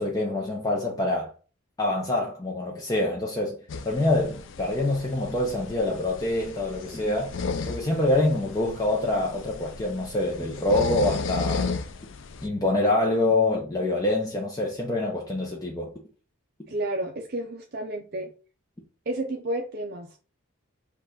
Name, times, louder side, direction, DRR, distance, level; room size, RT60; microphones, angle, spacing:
voice 1, 0.0-1.3 1.8-3.6 3.8-7.4 7.6-11.7 12.4-15.9, left 2 dB, 15° left, 0.6 m, -25 dB
sound 1, 3.7-12.5, left 4 dB, 60° left, 0.4 m, -34 dB
voice 2, 16.7-18.3 19.1-20.2, right 1 dB, 45° right, 0.5 m, -31 dB
5.5 x 2.4 x 3.7 m
head